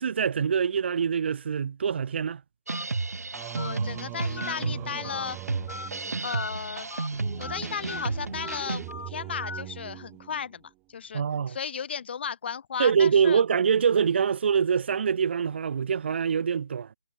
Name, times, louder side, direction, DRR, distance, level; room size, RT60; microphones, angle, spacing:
voice 1, 0.0-2.4 11.1-11.6 12.8-16.9, right 7 dB, 45° right, 2.3 m, -24 dB
Telephone, 2.7-2.8 3.6-3.7 4.4-4.5 5.0-5.3 5.7-5.9 6.3-6.5 6.9-7.1 7.4-7.6 7.9-8.1 8.4-8.6 8.9-9.1 9.4-9.6, left 4 dB, 75° left, 5.1 m, -37 dB
sound 1, 2.7-8.9, right 3 dB, 85° right, 2.3 m, -33 dB
Singing, 3.3-10.7, right 24 dB, 15° right, 3.3 m, -42 dB
voice 2, 3.6-5.4 6.2-6.9 7.4-10.6 10.9-13.4, left 7 dB, 45° left, 3.2 m, -35 dB
hypercardioid pair, 165°, 8 cm